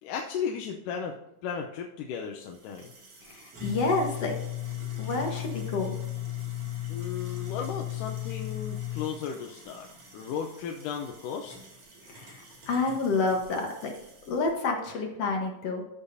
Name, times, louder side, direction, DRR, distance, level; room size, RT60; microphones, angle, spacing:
voice 1, 0.0-1.1 1.4-2.9 6.9-9.9 10.1-11.6, left 7 dB, 80° left, 1 dB, 2.3 m, -35 dB
sound 1, 2.4-14.5, left 12 dB, 55° right, 3.5 m, -38 dB
voice 2, 3.2-4.3 5.0-6.0 12.0-13.9 14.3-15.8, left 3 dB, 60° left, 2 dB, 2.0 m, -29 dB
13.5 x 7.3 x 2.7 m, 0.89 s
omnidirectional pair, 3.8 m